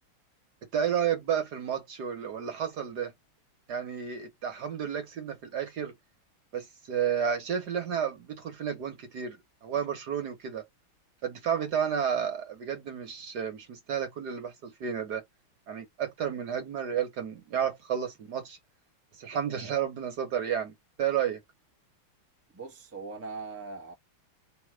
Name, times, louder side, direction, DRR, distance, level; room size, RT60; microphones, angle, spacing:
voice 1, 0.7-3.1 3.7-5.9 6.5-9.4 9.6-10.7 11.2-15.2 15.7-18.6 19.1-21.4, right 8 dB, 55° right, 1.6 m, -31 dB
voice 2, 22.5-23.9, right 4 dB, 10° right, 0.7 m, -40 dB
3.4 x 2.8 x 4.7 m
omnidirectional pair, 2.4 m